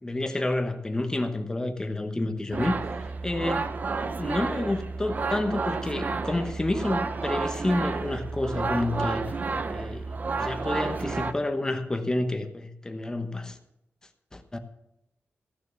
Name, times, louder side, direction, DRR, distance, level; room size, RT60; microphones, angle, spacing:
voice 1, 0.0-2.8 3.2-3.7 4.2-9.3 9.7-10.1 10.4-13.6 14.3-14.6, left 2 dB, 15° left, 1.1 m, -29 dB
sound 1, 2.5-11.3, right 4 dB, 40° right, 0.7 m, -31 dB
14.5 x 6.6 x 7.5 m
wide cardioid pair, 135°, 4 cm